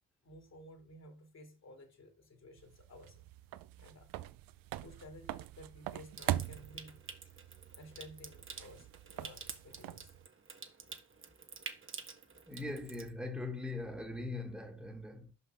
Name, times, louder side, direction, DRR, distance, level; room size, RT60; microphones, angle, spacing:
voice 1, 0.2-3.3 3.8-4.1 4.8-7.0 7.7-10.1, left 1 dB, 50° left, 2.6 m, -54 dB
sound 1, 2.6-10.3, right 14 dB, 85° right, 0.5 m, -43 dB
Water tap faucet / Sink (filling or washing) / Trickle dribble, 6.1-13.1, right 5 dB, 40° right, 1.2 m, -49 dB
voice 2, 12.5-15.3, left 2 dB, 5° right, 1.7 m, -41 dB
5.8 x 5.4 x 4.7 m
supercardioid pair, 55°, 33 cm